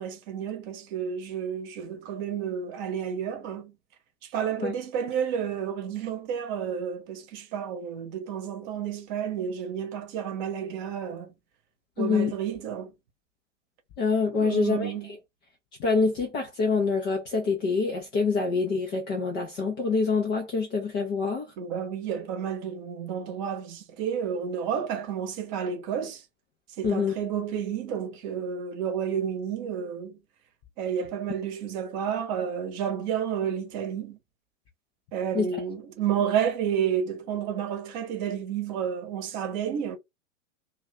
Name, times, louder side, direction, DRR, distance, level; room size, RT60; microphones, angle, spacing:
voice 1, 0.0-3.7 4.2-11.3 12.0-12.9 14.3-15.1 21.6-26.2 26.8-30.2 30.8-34.2 35.1-40.0, right 8 dB, 35° right, 0.9 m, -31 dB
voice 2, 12.0-12.3 14.0-14.9 15.8-21.5 26.8-27.1 35.3-35.5, left 4 dB, 15° left, 0.3 m, -26 dB
2.7 x 2.2 x 3.3 m
figure-of-eight pair, 100°, 38 cm